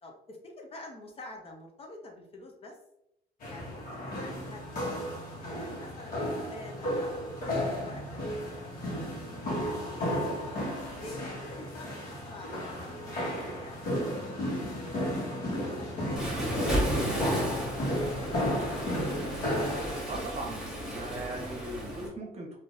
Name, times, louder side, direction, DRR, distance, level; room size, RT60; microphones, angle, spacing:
voice 1, 0.0-2.8 3.5-3.8 4.2-4.6 5.4-9.0 9.6-10.1 11.0-13.9 14.5-17.6 17.9-18.9, left 2 dB, 35° left, 1 dB, 0.7 m, -47 dB
sound 1, 3.4-20.0, equal, 60° left, 1.3 m, -33 dB
Waves surf, 16.2-22.1, equal, ahead, 1.2 m, -33 dB
voice 2, 20.1-22.6, right 2 dB, 40° right, 0 dB, 0.9 m, -39 dB
3.7 x 2.7 x 2.5 m, 0.82 s
cardioid pair, 110°, 17 cm